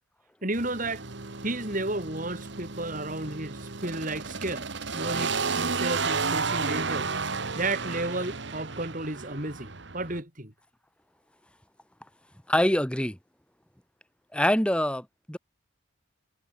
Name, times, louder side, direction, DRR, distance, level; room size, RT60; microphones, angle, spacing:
voice 1, 0.4-1.0 1.4-4.7 4.9-7.1 7.5-10.5, right 2 dB, 40° right, 4.7 m, -32 dB
sound 1, 0.5-10.2, right 4 dB, 55° right, 1.5 m, -32 dB
voice 2, 12.5-13.2 14.3-15.4, left 1 dB, 5° left, 1.2 m, -25 dB
head